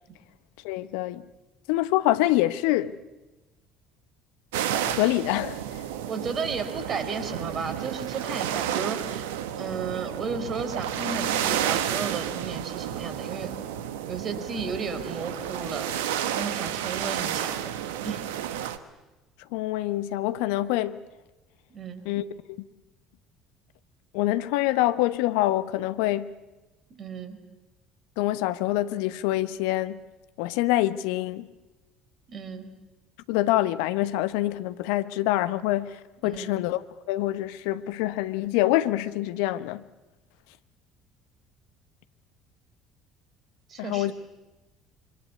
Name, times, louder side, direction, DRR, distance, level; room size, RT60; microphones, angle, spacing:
voice 1, 0.6-1.2 1.7-3.0 4.8-5.9 19.5-21.0 22.0-22.2 22.6-22.7 24.1-26.3 28.2-30.0 30.4-31.5 33.3-39.8 43.8-44.1, left 15 dB, 70° left, 1.0 m, -26 dB
sound 1, 4.5-18.8, right 10 dB, 75° right, 1.3 m, -31 dB
voice 2, 6.1-9.2 9.6-13.6 14.1-16.0 16.3-17.6 18.0-18.2 21.7-22.1 26.9-27.4 32.3-32.8 36.3-36.5 43.7-44.1, right 5 dB, 40° right, 4.2 m, -34 dB
26.5 x 25.0 x 8.4 m
figure-of-eight pair, 55°, 0 cm